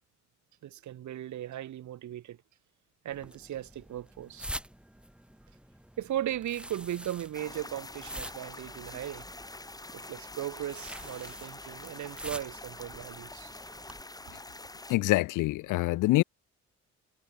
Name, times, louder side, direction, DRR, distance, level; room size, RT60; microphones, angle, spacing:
voice 1, 0.6-2.4 3.0-4.5 6.0-9.2 9.9-13.5, right 12 dB, 70° right, 2.1 m, -37 dB
Receipt Paper Swipe, 3.1-14.0, equal, 5° right, 3.0 m, -46 dB
sound 1, 7.3-15.0, left 2 dB, 10° left, 2.3 m, -46 dB
voice 2, 14.9-16.2, left 19 dB, 90° left, 0.7 m, -25 dB
cardioid pair, 90°, 30 cm